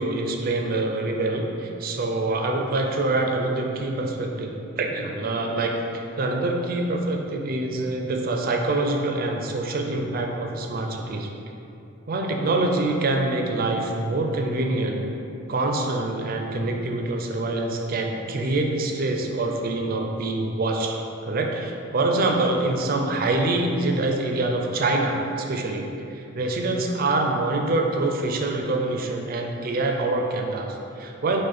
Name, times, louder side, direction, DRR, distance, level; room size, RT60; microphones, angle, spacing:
voice 1, 0.0-11.3 12.1-15.1 15.5-21.0 21.2-31.4, right 2 dB, 45° right, 2 dB, 0.4 m, -25 dB
5.0 x 2.1 x 4.1 m, 2.7 s
head